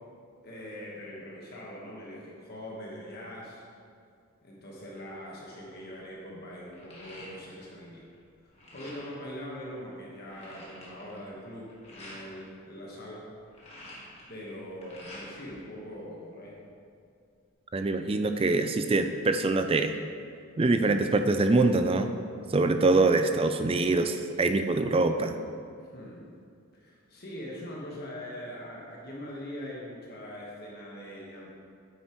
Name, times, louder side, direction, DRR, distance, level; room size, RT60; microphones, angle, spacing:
voice 1, 0.4-3.6 4.4-8.1 8.4-13.3 14.3-16.6 25.8-26.2 26.7-31.5, equal, 45° left, -4 dB, 1.3 m, -42 dB
sound 1, 6.5-7.8 8.1-9.3 9.7-9.8 10.0-12.3 13.3-15.5 15.9-16.8, left 1 dB, 30° left, 1.7 m, -48 dB
voice 2, 17.7-20.0 20.6-22.1 22.5-25.4, right 3 dB, 25° right, 7 dB, 0.4 m, -24 dB
9.1 x 8.4 x 3.1 m, 2.3 s
head